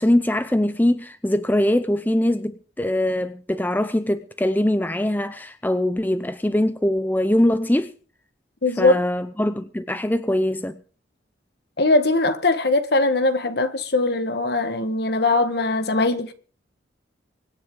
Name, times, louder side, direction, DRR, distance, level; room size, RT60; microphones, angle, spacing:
voice 1, 0.0-7.9 8.8-10.8, left 1 dB, 10° left, 0.6 m, -22 dB
voice 2, 8.6-8.9 11.8-16.3, left 2 dB, 55° left, 1.5 m, -20 dB
24.5 x 9.7 x 3.8 m
head